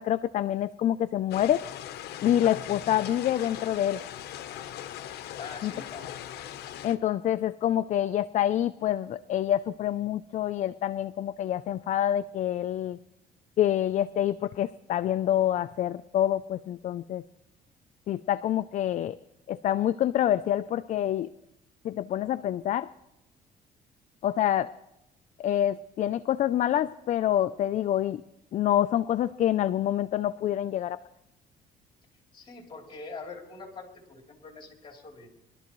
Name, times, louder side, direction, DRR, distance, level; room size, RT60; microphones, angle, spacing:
voice 1, 0.0-1.6 2.2-4.0 5.6-5.7 6.8-13.0 13.6-17.2 18.1-19.2 19.5-21.3 21.8-22.9 24.2-24.7 25.4-28.2 28.5-31.0, left 11 dB, 45° left, 13 dB, 0.4 m, -27 dB
sound 1, 1.3-7.0, left 11 dB, 75° left, 0.8 m, -40 dB
voice 2, 5.4-6.1 32.3-35.3, left 4 dB, 30° left, 0 dB, 3.2 m, -43 dB
23.0 x 12.5 x 3.1 m, 0.89 s
cardioid pair, 110°, 17 cm